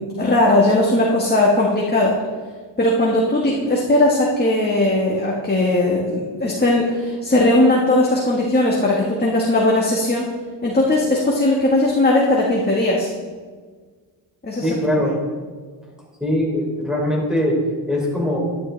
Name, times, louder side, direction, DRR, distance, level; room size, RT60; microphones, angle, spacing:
voice 1, 0.0-2.1 2.8-10.3 10.6-13.1 14.4-14.7, left 1 dB, 20° left, -3 dB, 1.7 m, -18 dB
voice 2, 14.6-15.2 16.2-17.6 17.9-18.4, left 1 dB, ahead, -2 dB, 3.5 m, -21 dB
12.0 x 11.0 x 3.4 m, 1.5 s
cardioid pair, 95°, 47 cm